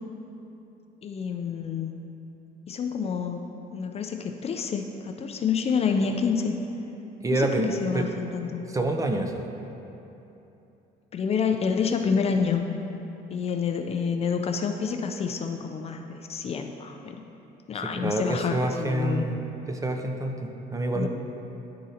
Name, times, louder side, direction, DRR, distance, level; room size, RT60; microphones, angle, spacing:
voice 1, 1.0-2.0 2.7-6.5 7.3-8.6 11.1-12.6 13.3-17.2 17.7-19.3 21.0-21.1, left 6 dB, 35° left, 5 dB, 0.4 m, -28 dB
voice 2, 7.2-7.7 7.9-8.1 8.7-9.4 18.0-19.4 19.7-21.1, right 1 dB, 20° right, 4 dB, 0.5 m, -27 dB
11.5 x 3.8 x 2.8 m, 3.0 s
cardioid pair, 110°, 17 cm